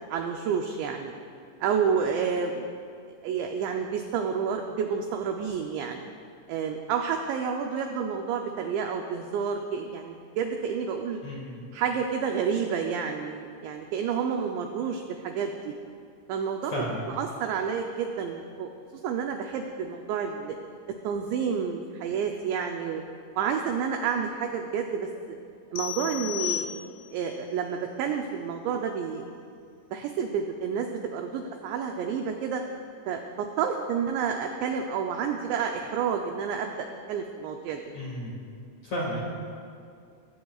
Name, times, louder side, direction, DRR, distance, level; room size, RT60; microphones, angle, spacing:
voice 1, 0.1-1.1 1.6-2.8 3.2-6.1 6.5-11.2 11.7-15.7 16.3-16.9 17.2-18.7 19.0-20.6 21.0-23.0 23.4-25.1 25.7-26.7 27.1-29.2 29.9-32.6 33.1-36.8 37.1-37.8, right 6 dB, 85° right, 3 dB, 2.5 m, -29 dB
voice 2, 11.2-11.7 16.7-17.0 37.9-38.4 38.8-39.2, equal, 50° left, -4 dB, 2.3 m, -33 dB
sound 1, 25.8-27.3, left 13 dB, 75° left, 3.0 m, -34 dB
22.5 x 15.5 x 2.4 m, 2.4 s
omnidirectional pair, 6.0 m